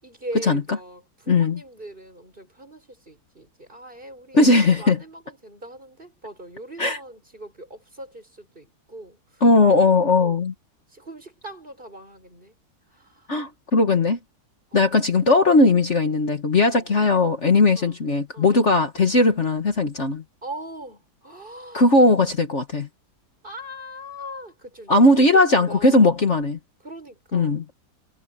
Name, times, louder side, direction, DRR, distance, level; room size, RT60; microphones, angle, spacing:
voice 1, 0.0-9.2 9.9-10.4 10.9-12.6 12.9-13.3 14.7-15.0 16.7-16.9 17.8-18.0 18.3-18.8 20.4-21.9 23.4-26.2 26.8-27.6, right 1 dB, 30° right, 7.2 m, -40 dB
voice 2, 1.3-1.6 4.3-5.0 6.8-7.0 9.4-10.5 13.3-14.2 14.7-20.2 21.7-22.9 24.9-26.6 27.3-27.6, left 2 dB, 45° left, 1.9 m, -18 dB
omnidirectional pair, 1.7 m